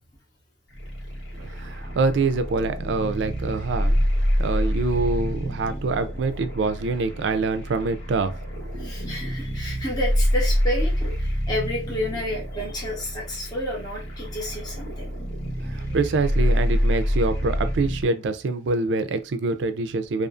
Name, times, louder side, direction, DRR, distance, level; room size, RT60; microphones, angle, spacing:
sound 1, 0.7-18.1, equal, 80° left, 1.1 m, -27 dB
voice 1, 1.4-4.0 4.4-8.3 8.6-8.8 15.6-20.3, right 3 dB, 70° right, 0.4 m, -25 dB
voice 2, 8.7-15.1, left 1 dB, 20° left, 0.8 m, -30 dB
2.5 x 2.4 x 2.3 m
head